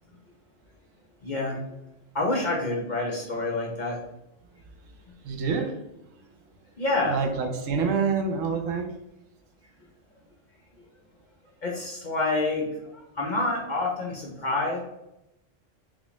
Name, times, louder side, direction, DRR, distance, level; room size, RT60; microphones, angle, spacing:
voice 1, 1.2-1.6 2.1-4.0 6.8-7.2 11.6-14.8, left 2 dB, 50° left, -2 dB, 0.6 m, -28 dB
voice 2, 5.2-5.8 7.0-9.0, right 5 dB, 80° right, 5 dB, 1.0 m, -27 dB
3.9 x 2.4 x 3.0 m, 0.88 s
omnidirectional pair, 1.3 m